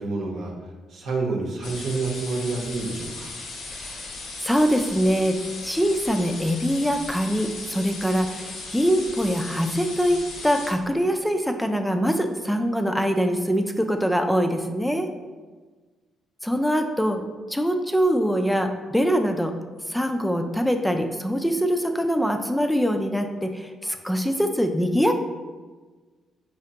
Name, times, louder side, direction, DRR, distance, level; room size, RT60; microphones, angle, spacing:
voice 1, 0.0-3.4, right 3 dB, 70° right, 0 dB, 0.9 m, -29 dB
sound 1, 1.6-10.7, left 3 dB, 80° left, 0.9 m, -37 dB
voice 2, 3.7-4.1 4.4-5.4 5.6-15.1 16.4-17.2 17.5-19.5 19.9-25.1, equal, ahead, 5 dB, 0.4 m, -23 dB
4.8 x 3.2 x 2.8 m, 1.3 s
cardioid pair, 90°, 0 cm